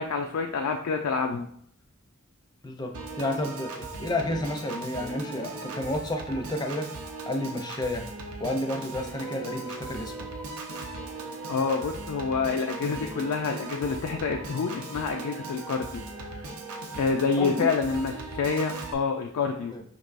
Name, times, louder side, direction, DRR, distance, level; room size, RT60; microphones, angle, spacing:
voice 1, 0.0-1.5 11.5-16.0 17.0-19.7, left 5 dB, 80° left, 3 dB, 0.4 m, -27 dB
voice 2, 2.6-6.9 7.3-8.0 8.4-10.3 17.4-17.7 19.7-19.8, left 1 dB, 20° left, 3 dB, 0.5 m, -31 dB
Piano / Organ, 2.9-18.9, right 2 dB, 80° right, 0.6 m, -38 dB
5.1 x 3.2 x 2.5 m, 0.65 s
head